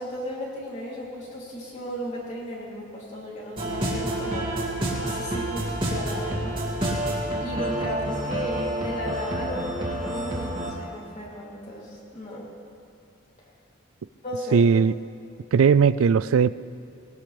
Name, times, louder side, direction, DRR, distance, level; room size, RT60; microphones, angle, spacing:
voice 1, 0.0-4.5 5.0-6.6 7.4-12.5 14.2-14.6, equal, 35° left, -5 dB, 3.3 m, -35 dB
sound 1, 3.6-10.7, right 1 dB, 25° right, 2.5 m, -29 dB
voice 2, 14.5-15.0 15.5-16.5, right 6 dB, 80° right, 17 dB, 0.4 m, -18 dB
20.5 x 18.0 x 3.5 m, 2.5 s
head